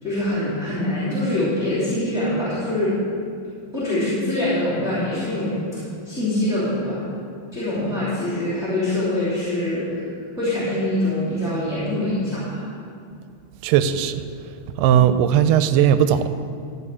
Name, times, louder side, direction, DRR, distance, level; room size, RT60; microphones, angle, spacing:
voice 1, 0.0-3.0 3.7-5.8 6.0-7.1 7.5-9.9 10.3-12.6, left 1 dB, ahead, -10 dB, 2.5 m, -24 dB
voice 2, 13.6-14.2 14.8-16.3, right 9 dB, 80° right, 11 dB, 2.1 m, -17 dB
13.5 x 4.9 x 8.3 m, 2.3 s
omnidirectional pair, 4.0 m